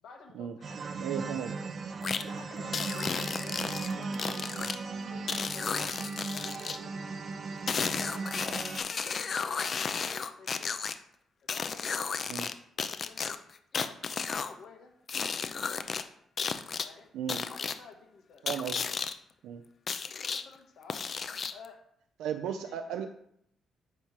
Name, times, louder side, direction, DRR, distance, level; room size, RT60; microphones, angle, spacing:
voice 1, 0.0-1.8 2.1-4.6 5.1-6.0 6.3-7.5 7.9-8.7 8.9-10.8 11.4-12.5 12.8-13.4 13.8-14.9 15.2-15.9 16.8-17.1 17.4-18.4 20.0-21.0 21.3-21.8 22.6-23.0, left 5 dB, 70° left, 2 dB, 1.3 m, -52 dB
sound 1, 0.6-8.8, right 4 dB, 45° right, 0.6 m, -37 dB
voice 2, 1.0-1.5 12.3-12.5 17.1-17.4 18.4-18.8 19.4-19.6 22.2-23.1, right 8 dB, 85° right, 6 dB, 0.5 m, -35 dB
sound 2, 2.0-2.2 2.7-4.8 5.3-6.8 7.7-10.9 11.5-12.5 12.8-14.5 15.1-16.0 16.4-16.9 17.3-17.8 18.5-19.1 19.9-20.4 20.9-21.7, left 5 dB, 45° left, 0.5 m, -33 dB
8.9 x 3.1 x 5.9 m, 0.71 s
cardioid pair, 90°, 0 cm